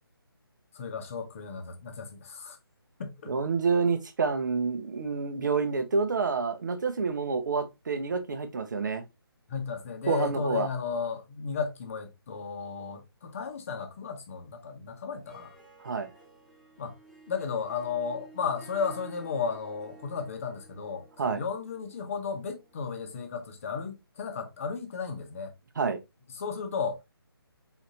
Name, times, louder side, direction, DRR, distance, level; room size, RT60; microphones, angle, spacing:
voice 1, 0.7-2.6 3.0-3.3 9.5-15.6 16.8-16.9 17.3-25.5 26.3-27.1, left 5 dB, 35° left, 0.9 m, -34 dB
voice 2, 3.3-9.0 10.1-10.7 15.8-16.1 21.2-21.4 25.8-26.0, right 5 dB, 50° right, 0.8 m, -28 dB
Harp, 15.1-23.7, right 3 dB, 5° left, 0.6 m, -54 dB
4.4 x 4.1 x 2.6 m
figure-of-eight pair, 150°, 13 cm